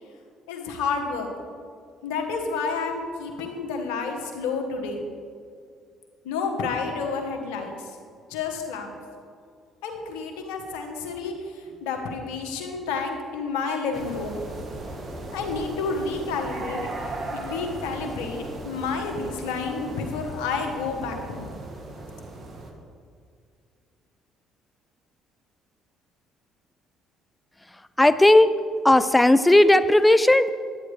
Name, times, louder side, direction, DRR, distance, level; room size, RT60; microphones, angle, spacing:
voice 1, 0.5-1.3 2.0-5.0 6.2-7.9 8.3-8.9 9.8-14.4 15.3-16.9 17.3-21.6, left 4 dB, 80° left, 3 dB, 1.2 m, -30 dB
sound 1, 13.9-22.7, right 2 dB, 45° right, 1.5 m, -37 dB
voice 2, 28.0-28.5 28.8-30.5, left 1 dB, 10° left, 14 dB, 0.4 m, -16 dB
11.0 x 9.0 x 3.3 m, 2.2 s
hypercardioid pair, 60°, 0 cm